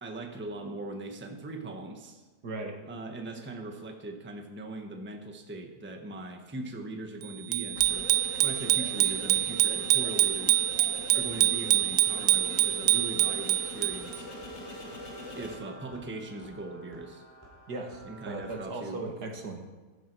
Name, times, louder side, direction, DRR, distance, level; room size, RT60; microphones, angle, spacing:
voice 1, 0.0-2.3 2.9-8.1 8.4-10.6 11.1-14.3 15.3-17.2 18.0-19.0, right 2 dB, 5° right, 3 dB, 1.1 m, -40 dB
voice 2, 2.4-2.8 17.7-18.0 18.3-19.6, right 2 dB, 65° right, 3 dB, 2.4 m, -37 dB
Bicycle bell, 7.5-14.2, right 15 dB, 85° right, 1.2 m, -25 dB
sound 1, 7.7-15.6, left 1 dB, 70° left, 2.9 m, -42 dB
sound 2, 13.3-18.6, right 1 dB, 10° left, 4.5 m, -51 dB
15.5 x 12.5 x 4.7 m, 1.3 s
omnidirectional pair, 1.9 m